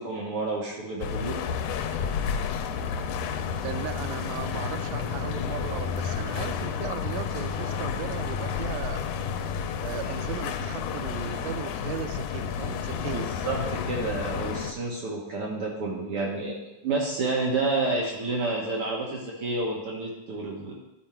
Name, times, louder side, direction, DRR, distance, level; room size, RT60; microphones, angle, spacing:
voice 1, 0.0-1.4 13.1-13.6 13.8-16.6 16.8-20.7, right 3 dB, 60° right, -3 dB, 1.8 m, -29 dB
sound 1, 0.7-10.8, equal, 40° right, 3.5 m, -48 dB
sound 2, 1.0-14.7, left 7 dB, 85° left, 2.0 m, -31 dB
voice 2, 3.6-9.0 9.8-13.3, right 10 dB, 85° right, 10 dB, 1.5 m, -37 dB
11.5 x 4.3 x 4.4 m, 0.94 s
omnidirectional pair, 3.6 m